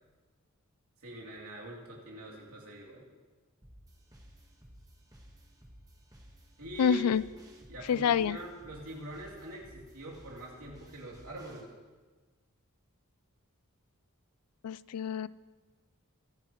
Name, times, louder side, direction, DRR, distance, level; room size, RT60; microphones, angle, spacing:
voice 1, 1.0-3.1 6.6-7.2 7.7-11.7, equal, 70° right, -3 dB, 3.1 m, -44 dB
sound 1, 3.6-11.6, equal, 15° right, 1.4 m, -56 dB
voice 2, 6.8-7.2 7.9-8.4 14.6-15.3, left 7 dB, 85° left, 19 dB, 0.4 m, -27 dB
22.0 x 9.7 x 3.1 m, 1.3 s
head